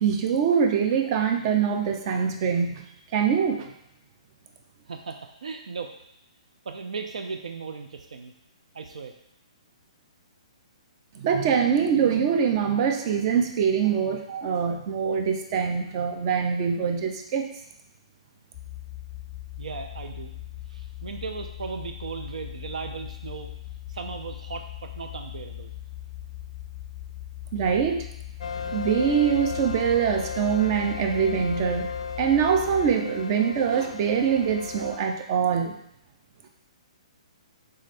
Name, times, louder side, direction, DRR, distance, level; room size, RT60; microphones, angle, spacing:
voice 1, 0.0-2.8 3.1-3.7 11.2-17.5 27.5-28.1 28.7-35.7, right 7 dB, 40° right, 4 dB, 0.6 m, -24 dB
voice 2, 4.9-5.9 6.6-8.3 8.7-9.1 19.6-20.3 20.7-23.5 23.9-25.7, right 5 dB, 80° right, 6 dB, 0.4 m, -36 dB
sound 1, 18.5-33.0, left 13 dB, 25° left, 0.6 m, -40 dB
sound 2, 28.4-35.0, left 5 dB, 70° left, 0.4 m, -35 dB
3.8 x 3.2 x 4.1 m, 0.77 s
hypercardioid pair, 145°, 4 cm